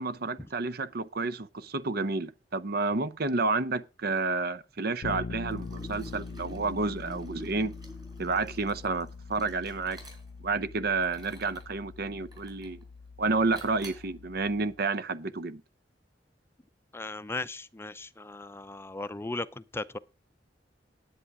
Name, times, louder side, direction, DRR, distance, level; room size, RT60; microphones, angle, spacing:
voice 1, 0.0-7.7 8.2-10.0 10.4-12.8 13.2-15.6, right 3 dB, 60° right, 0.8 m, -30 dB
Bass guitar, 5.0-14.8, left 4 dB, 75° left, 0.6 m, -43 dB
Liquid, 5.5-10.5 11.0-11.7 12.3-12.8 13.5-14.1, equal, 25° right, 4.5 m, -49 dB
voice 2, 16.9-20.0, left 2 dB, 15° left, 0.5 m, -37 dB
10.5 x 9.5 x 4.8 m
head